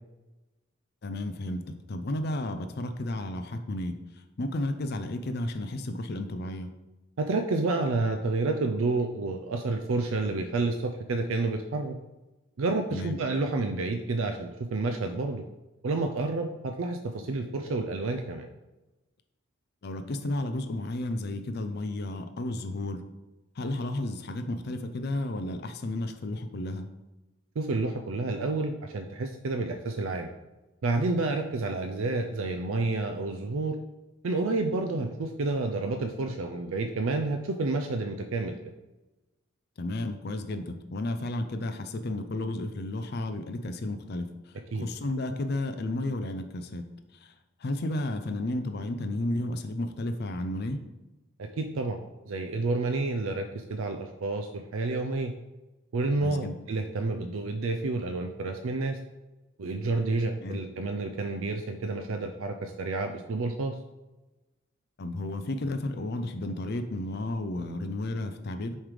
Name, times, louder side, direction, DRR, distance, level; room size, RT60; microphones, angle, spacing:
voice 1, 1.0-6.7 12.9-13.2 19.8-23.0 23.6-26.9 39.8-46.9 47.1-47.3 47.6-50.8 56.2-56.6 60.4-60.6 65.0-68.8, left 1 dB, 50° left, 8 dB, 0.5 m, -33 dB
voice 2, 7.2-11.9 12.6-15.4 15.8-18.5 27.6-30.3 30.8-33.8 34.2-38.7 44.7-44.9 51.4-52.0 52.3-55.3 55.9-59.0 59.6-63.8, right 3 dB, 75° right, 5 dB, 0.5 m, -29 dB
7.2 x 3.2 x 5.0 m, 1.1 s
head